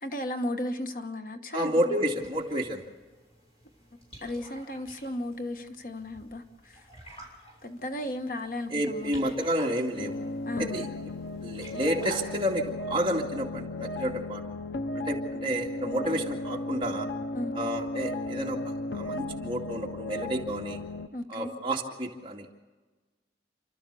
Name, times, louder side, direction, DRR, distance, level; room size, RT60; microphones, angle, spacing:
voice 1, 0.0-2.0 4.2-6.8 7.6-9.3 10.4-10.9 17.3-17.5 21.1-21.5, left 1 dB, 50° left, 1.1 m, -35 dB
voice 2, 1.5-2.8 8.7-10.2 10.6-10.9 11.4-14.4 15.0-17.1 17.5-20.8 21.3-22.5, equal, 30° right, 2.3 m, -30 dB
sound 1, 2.2-12.7, right 1 dB, 35° left, 6.5 m, -50 dB
sound 2, 10.0-21.1, left 2 dB, 80° left, 0.7 m, -35 dB
30.0 x 13.0 x 6.9 m
head